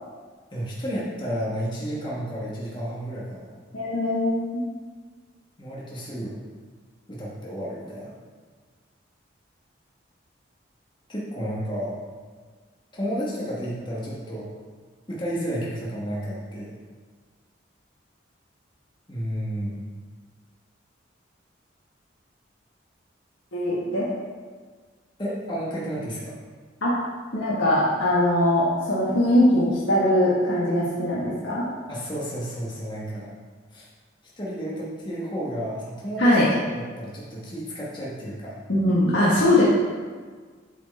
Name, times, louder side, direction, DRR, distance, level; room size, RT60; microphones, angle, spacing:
voice 1, 0.5-3.6 5.6-6.4 7.1-8.1 11.1-11.9 12.9-14.5 15.1-16.7 19.1-19.8 25.2-26.3 31.9-33.3 33.7-33.9 34.4-36.3 36.7-38.6, equal, 25° left, -6 dB, 1.1 m, -31 dB
voice 2, 3.7-4.7 23.5-24.1 26.8-26.9 27.3-31.7 36.2-36.5 38.7-39.6, left 1 dB, 80° left, -8 dB, 1.3 m, -21 dB
7.7 x 4.5 x 4.1 m, 1.5 s
head